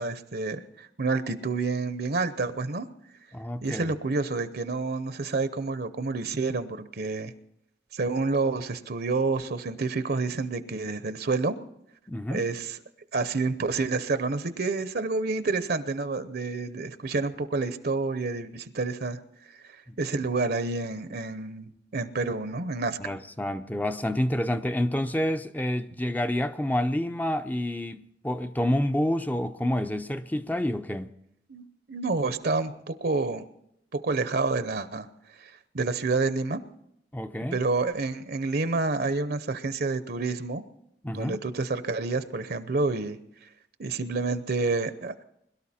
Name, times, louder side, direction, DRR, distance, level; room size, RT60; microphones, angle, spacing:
voice 1, 0.0-2.9 3.6-7.3 7.9-11.6 12.3-12.8 13.1-19.2 20.0-23.1 31.5-33.5 33.9-35.1 35.4-36.6 37.5-40.6 41.1-43.2 43.8-45.2, right 3 dB, 60° right, 0.8 m, -29 dB
voice 2, 3.3-4.0 12.1-12.5 19.9-20.0 23.0-31.1 37.1-37.6 41.0-41.4, left 1 dB, 10° left, 0.5 m, -28 dB
22.0 x 12.5 x 4.3 m
head